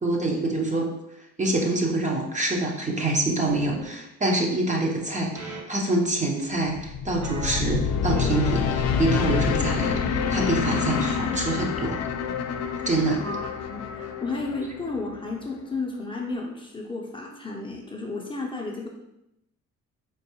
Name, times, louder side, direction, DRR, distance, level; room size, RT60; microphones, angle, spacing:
voice 1, 0.0-0.9 1.4-12.0 12.9-13.2, right 2 dB, 25° right, 0 dB, 0.7 m, -26 dB
sound 1, 3.5-3.8 5.3-5.6 7.2-7.6 8.2-11.0, right 2 dB, 80° right, 1.2 m, -37 dB
sound 2, 6.7-15.8, left 6 dB, 60° left, 0.5 m, -27 dB
voice 2, 13.2-18.9, left 3 dB, 15° left, -1 dB, 0.7 m, -33 dB
4.5 x 2.5 x 2.9 m, 0.85 s
cardioid pair, 85°, 29 cm